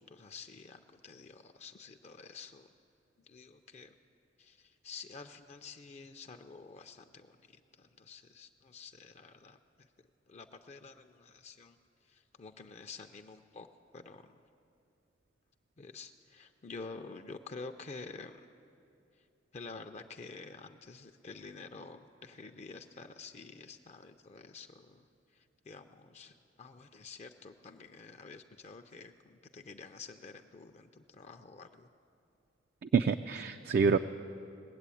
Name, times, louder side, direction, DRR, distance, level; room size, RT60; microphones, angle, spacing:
voice 1, 0.0-2.7 3.3-4.0 4.4-9.6 10.3-11.8 12.1-13.7 13.9-14.4 15.8-18.5 19.5-25.0 25.3-31.9, left 4 dB, 35° left, 7 dB, 0.4 m, -49 dB
voice 2, 32.8-34.0, right 5 dB, 50° right, 9 dB, 0.3 m, -27 dB
20.0 x 8.2 x 8.4 m, 2.6 s
head